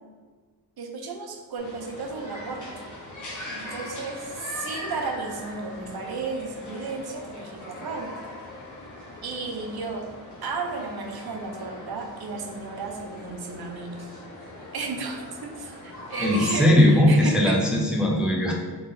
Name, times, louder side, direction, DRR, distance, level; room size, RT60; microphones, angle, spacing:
voice 1, 0.8-2.8 3.5-8.1 9.2-10.1 10.4-14.1 14.7-17.6, right 4 dB, 60° right, 3 dB, 0.8 m, -33 dB
sound 1, 1.6-16.5, left 2 dB, 45° left, 1.1 m, -40 dB
voice 2, 16.2-18.5, left 1 dB, ahead, -2 dB, 0.5 m, -19 dB
3.9 x 3.5 x 3.7 m, 1.5 s
wide cardioid pair, 130°, 41 cm